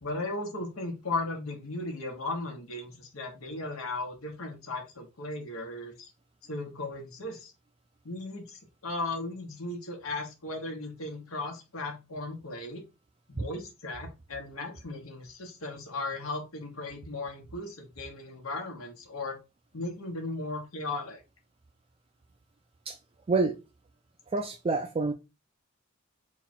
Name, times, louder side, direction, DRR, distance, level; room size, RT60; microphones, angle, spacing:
voice 1, 0.0-6.1 6.5-7.5 8.0-12.8 13.3-19.4 19.7-21.2, left 2 dB, 90° left, 1.2 m, -36 dB
voice 2, 23.3-23.6 24.3-25.1, right 3 dB, 25° right, 0.3 m, -27 dB
4.2 x 2.4 x 4.1 m
head